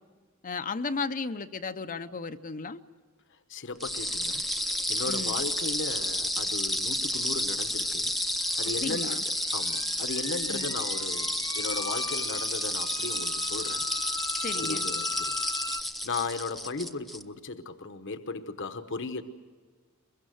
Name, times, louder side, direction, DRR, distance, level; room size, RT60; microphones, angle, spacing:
voice 1, 0.4-2.8 5.1-5.4 8.8-9.2 10.5-10.7 14.4-14.9, left 4 dB, 35° left, 10 dB, 0.7 m, -35 dB
voice 2, 3.3-4.4 4.9-8.1 8.6-13.8 14.5-15.3 16.0-19.2, left 3 dB, 55° left, 9 dB, 1.1 m, -36 dB
sound 1, 3.8-17.2, left 1 dB, ahead, 0.7 m, -31 dB
sound 2, 8.2-15.8, left 4 dB, 15° left, 1.0 m, -40 dB
22.5 x 22.5 x 7.9 m, 1.5 s
head